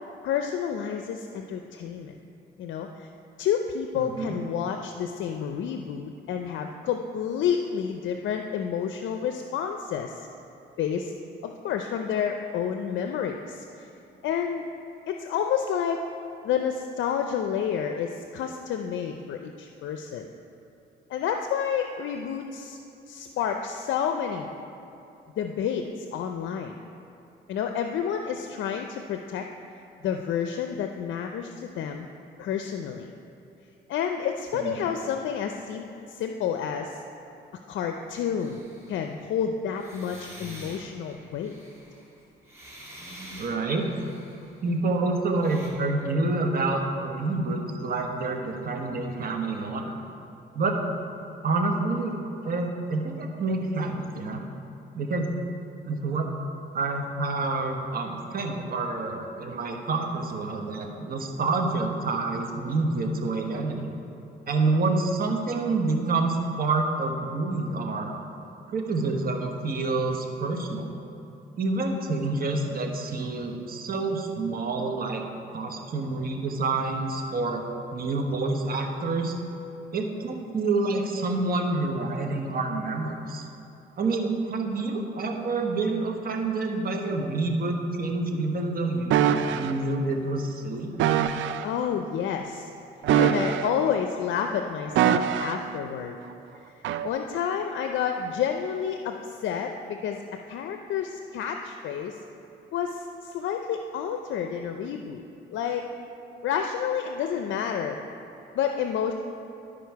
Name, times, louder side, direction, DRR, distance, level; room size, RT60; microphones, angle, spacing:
voice 1, 0.2-2.2 2.6-3.1 3.4-10.3 10.8-11.1 11.4-13.9 14.2-14.7 15.1-16.0 16.4-20.3 21.1-22.8 23.1-24.5 25.4-26.8 27.5-29.5 30.0-32.1 32.4-33.1 33.9-37.0 37.7-41.6 91.6-92.7 93.1-96.2 96.8-100.2 100.5-102.2 102.7-105.2 105.5-105.9 106.4-108.0 108.5-109.1, left 8 dB, 75° left, 5 dB, 0.5 m, -29 dB
voice 2, 3.9-4.4 34.5-34.7 43.4-43.9 44.6-50.0 50.5-50.8 51.4-54.5 54.9-55.3 55.9-56.3 56.7-64.0 64.5-68.1 68.7-70.9 71.6-75.2 75.5-77.6 77.9-79.3 79.9-83.4 84.0-90.9, right 3 dB, 50° right, 3 dB, 1.1 m, -28 dB
sound 1, 38.4-39.1 39.7-44.7 45.4-45.7, right 1 dB, 15° right, 2.2 m, -46 dB
sound 2, 89.1-89.7 91.0-91.7 93.0-93.9 95.0-95.7 96.8-97.1, right 9 dB, 75° right, 0.4 m, -23 dB
12.5 x 5.0 x 4.6 m, 2.9 s
cardioid pair, 90°, 20 cm